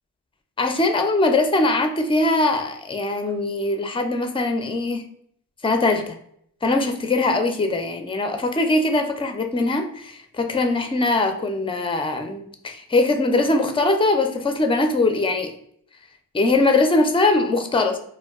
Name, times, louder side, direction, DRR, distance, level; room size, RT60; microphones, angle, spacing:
voice 1, 0.6-5.0 5.6-6.2 6.6-15.5 16.3-18.0, left 2 dB, 15° left, 6 dB, 0.5 m, -21 dB
2.2 x 2.2 x 3.5 m, 0.67 s
cardioid pair, 45°, 38 cm